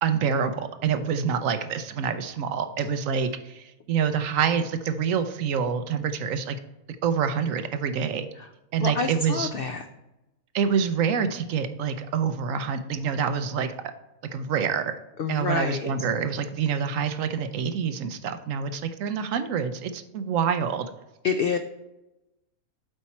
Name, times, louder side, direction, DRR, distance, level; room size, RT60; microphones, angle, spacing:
voice 1, 0.0-6.6 7.0-8.3 8.7-9.5 10.5-13.8 14.3-14.9 15.3-20.9, right 7 dB, 70° right, 9 dB, 1.0 m, -26 dB
voice 2, 8.8-9.8 15.2-15.9 21.2-21.6, left 5 dB, 70° left, 7 dB, 0.5 m, -27 dB
8.1 x 4.3 x 4.2 m, 0.96 s
omnidirectional pair, 1.5 m